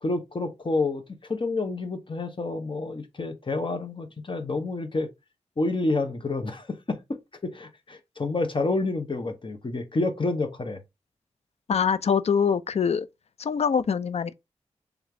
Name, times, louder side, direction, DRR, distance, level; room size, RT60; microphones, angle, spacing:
voice 1, 0.0-5.1 5.6-7.0 7.4-10.8, left 3 dB, 45° left, 0.9 m, -29 dB
voice 2, 11.7-13.1 13.4-14.3, left 6 dB, 60° left, 0.4 m, -24 dB
3.5 x 3.2 x 3.7 m
cardioid pair, 40°, 12 cm